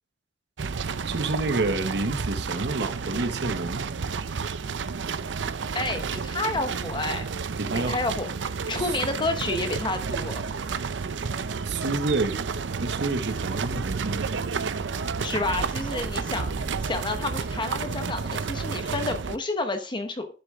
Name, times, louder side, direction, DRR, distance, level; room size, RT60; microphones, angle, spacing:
sound 1, 0.6-19.4, right 5 dB, 85° right, 0.6 m, -31 dB
voice 1, 1.1-3.8 7.6-8.0 8.7-8.9 11.7-12.4 12.8-14.3, right 2 dB, 70° right, 1.0 m, -28 dB
voice 2, 5.7-7.3 7.7-10.4 15.2-20.3, left 2 dB, 25° left, 0.9 m, -30 dB
11.5 x 6.4 x 3.5 m
head